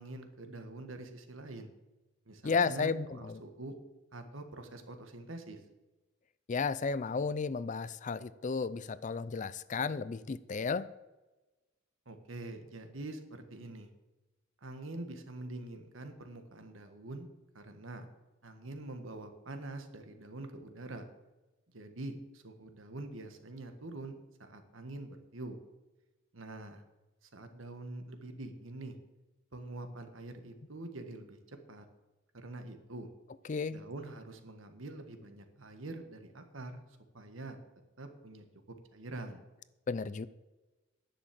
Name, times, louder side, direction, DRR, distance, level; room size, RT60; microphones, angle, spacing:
voice 1, 0.0-1.7 2.3-3.7 4.1-5.6 12.0-13.9 14.6-17.3 17.5-18.1 18.4-21.0 21.7-25.6 26.3-26.8 27.2-29.0 29.5-31.8 32.3-33.1 33.7-36.8 37.1-37.6 38.0-39.4, right 2 dB, 75° right, 1.5 m, -45 dB
voice 2, 2.4-3.4 6.5-10.9 33.5-33.8 39.9-40.3, left 5 dB, 40° left, 0.4 m, -33 dB
11.0 x 7.3 x 7.6 m
head